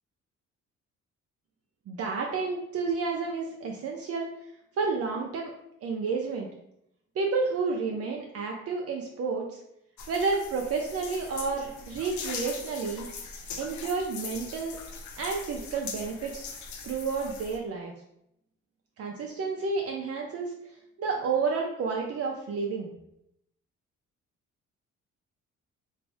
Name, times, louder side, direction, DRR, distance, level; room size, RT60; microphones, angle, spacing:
voice 1, 1.9-4.3 4.8-5.5 5.8-6.5 7.2-9.6 10.1-13.1 13.6-14.8 15.2-16.5 16.8-17.9 19.0-20.6 21.0-22.9, right 4 dB, 50° right, 0 dB, 0.5 m, -30 dB
sound 1, 10.0-17.6, left 5 dB, 75° left, 0.6 m, -41 dB
3.2 x 2.6 x 3.4 m, 0.79 s
cardioid pair, 90°, 30 cm